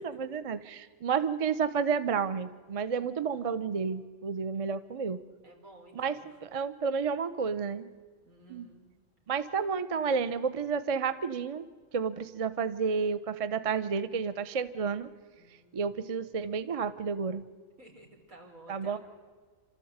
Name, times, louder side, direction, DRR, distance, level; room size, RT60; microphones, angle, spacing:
voice 1, 0.0-5.2 5.9-7.9 8.5-8.7 9.3-11.6 11.9-15.1 15.7-17.4 18.7-19.0, right 6 dB, 35° right, 13 dB, 0.6 m, -31 dB
voice 2, 3.2-3.7 5.4-6.3 8.2-8.9 15.4-15.9 17.8-19.0, right 1 dB, 85° right, -1 dB, 4.2 m, -54 dB
28.0 x 13.0 x 8.0 m, 1.5 s
omnidirectional pair, 1.4 m